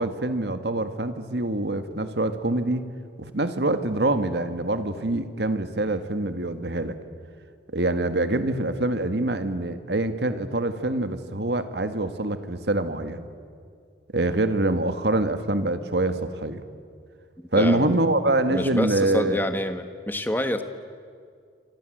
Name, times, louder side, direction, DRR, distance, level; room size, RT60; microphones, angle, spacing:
voice 1, 0.0-2.9 3.2-7.0 7.7-13.3 14.1-16.6 17.5-19.4, right 2 dB, 70° right, 9 dB, 1.8 m, -25 dB
voice 2, 17.5-18.0 18.5-20.6, left 1 dB, 10° left, 8 dB, 1.5 m, -27 dB
28.0 x 26.0 x 7.9 m, 2.2 s
head